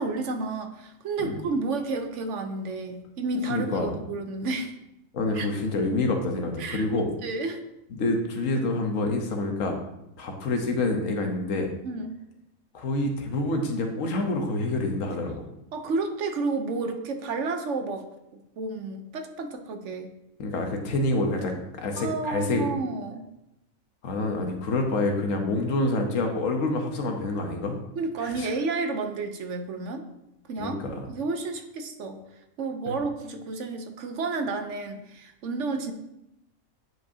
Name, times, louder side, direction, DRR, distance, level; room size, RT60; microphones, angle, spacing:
voice 1, 0.0-4.7 5.3-5.5 6.6-6.8 7.2-7.6 11.8-12.2 15.7-18.1 18.6-20.1 22.0-23.2 27.9-30.0 30.5-30.8 31.1-32.2 32.6-35.9, right 3 dB, 65° right, 6 dB, 1.0 m, -31 dB
voice 2, 3.5-4.0 5.1-7.1 7.9-9.8 10.2-11.7 12.7-15.5 20.4-22.7 24.0-27.8 28.2-28.5 30.6-31.1 32.9-33.0, left 2 dB, 75° left, 3 dB, 1.3 m, -27 dB
9.5 x 5.0 x 2.7 m, 0.87 s
omnidirectional pair, 1.4 m